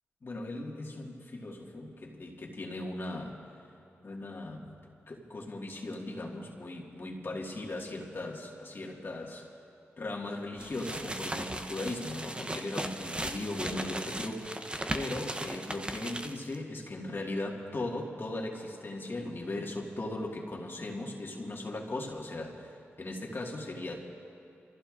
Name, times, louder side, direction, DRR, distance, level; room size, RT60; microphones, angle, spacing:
voice 1, 0.2-3.4 4.0-4.8 5.1-9.5 10.0-23.9, left 2 dB, 50° left, -1 dB, 1.9 m, -38 dB
sound 1, 10.6-16.6, right 1 dB, 20° right, 0.9 m, -37 dB
28.0 x 15.0 x 2.6 m, 2.6 s
cardioid pair, 55°, 5 cm